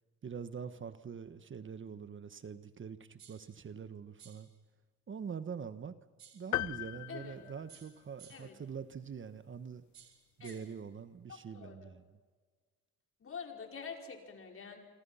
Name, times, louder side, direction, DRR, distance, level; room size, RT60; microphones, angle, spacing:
voice 1, 0.2-4.5 5.1-5.9 6.3-9.8 10.4-12.0, right 6 dB, 40° right, 12 dB, 1.3 m, -44 dB
sound 1, 3.2-3.5 4.2-4.5 6.2-6.5 7.7-8.6 9.9-10.8, right 8 dB, 65° right, 3.7 m, -58 dB
sound 2, 6.5-8.3, left 15 dB, 75° left, 0.6 m, -38 dB
voice 2, 7.1-7.4 8.3-8.5 10.4-10.6 11.3-11.9 13.2-14.8, left 6 dB, 45° left, 3 dB, 5.0 m, -46 dB
26.5 x 25.0 x 5.7 m, 1.4 s
cardioid pair, 90°, 30 cm